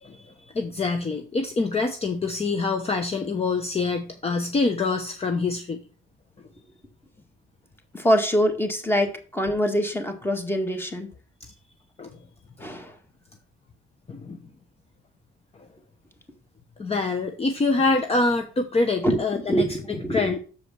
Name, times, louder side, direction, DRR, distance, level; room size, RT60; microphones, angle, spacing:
voice 1, 0.0-5.8 12.0-12.1 14.1-14.4 16.8-20.4, left 3 dB, 30° left, 0.9 m, -25 dB
voice 2, 7.9-11.1 12.6-13.0 19.0-20.3, equal, 10° left, 1.8 m, -24 dB
7.0 x 5.0 x 6.2 m
cardioid pair, 90°, 20 cm